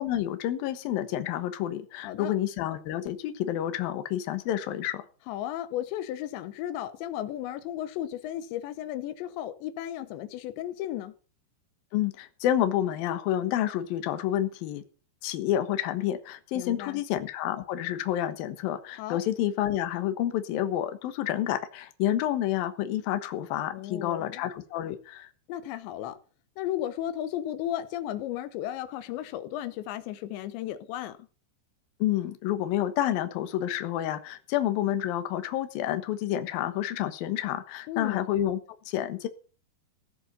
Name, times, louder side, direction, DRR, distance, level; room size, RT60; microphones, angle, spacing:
voice 1, 0.0-5.0 11.9-14.8 15.2-25.3 32.0-38.6 38.9-39.3, left 12 dB, 65° left, 2.7 m, -29 dB
voice 2, 5.3-11.1 16.5-17.0 19.0-19.2 23.7-24.4 25.5-26.2 26.6-31.2 37.9-38.2, left 12 dB, 90° left, 3.2 m, -34 dB
16.5 x 7.2 x 6.9 m
omnidirectional pair, 5.2 m